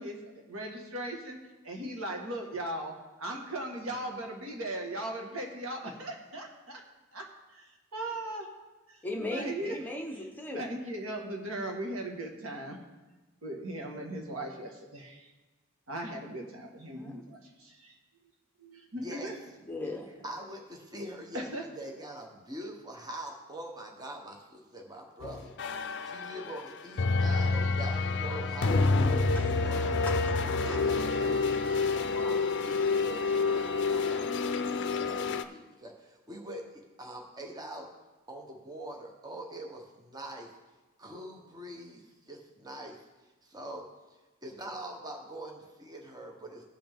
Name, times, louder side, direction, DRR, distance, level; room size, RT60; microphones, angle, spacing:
voice 1, 0.0-1.4 1.6-2.9 3.2-6.8 7.1-7.2 7.5-8.5 8.9-9.0 9.3-9.8 10.5-12.8 13.4-15.3 15.9-18.0 18.6-19.4 21.5-21.6, right 1 dB, 70° right, 1 dB, 1.5 m, -38 dB
voice 2, 9.0-10.6 16.9-17.2 19.7-20.1 29.3-29.8 30.3-30.4, left 1 dB, 10° left, 1 dB, 0.9 m, -37 dB
voice 3, 19.0-19.3 20.0-21.5 21.8-29.9 30.6-37.9 38.3-40.5 41.0-43.1 43.4-43.9 44.4-46.6, right 1 dB, 20° right, 1 dB, 0.9 m, -44 dB
sound 1, 25.2-35.4, left 4 dB, 55° left, 0.5 m, -28 dB
16.5 x 5.7 x 3.5 m, 1.2 s
head